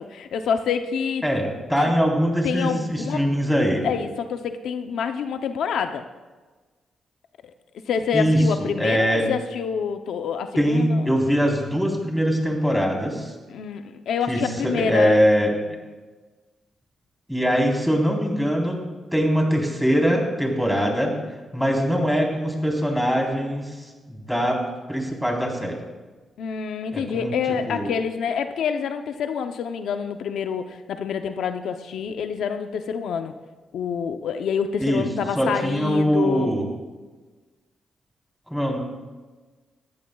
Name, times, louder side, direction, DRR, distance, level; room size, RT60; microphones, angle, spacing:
voice 1, 0.0-1.2 1.8-1.9 2.4-3.2 3.8-6.0 7.4-7.5 7.9-11.1 13.5-15.2 26.4-33.3 33.7-36.5, left 7 dB, 80° left, 7 dB, 0.7 m, -27 dB
voice 2, 1.2-3.8 8.1-9.3 10.6-13.3 14.3-15.5 17.3-18.8 19.1-21.2 21.5-24.6 24.9-25.8 26.9-27.3 27.7-27.9 34.8-35.0 35.4-36.6 38.5-38.8, equal, ahead, -1 dB, 3.9 m, -22 dB
20.0 x 14.5 x 2.4 m, 1.3 s
cardioid pair, 75°, 0 cm